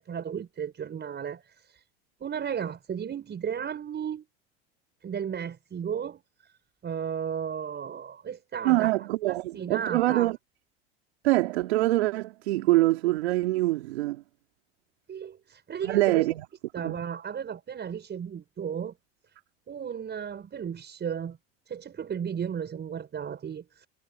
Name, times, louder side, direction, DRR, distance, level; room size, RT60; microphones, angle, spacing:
voice 1, 0.0-1.8 2.2-4.3 5.0-6.2 6.8-8.9 9.3-10.3 15.1-16.3 16.7-18.9 19.7-21.4 21.7-23.9, right 8 dB, 35° right, 5.7 m, -34 dB
voice 2, 8.6-10.4 11.2-14.2 15.8-16.4 16.8-17.0, right 17 dB, 80° right, 2.6 m, -24 dB
hypercardioid pair, 90°, 31 cm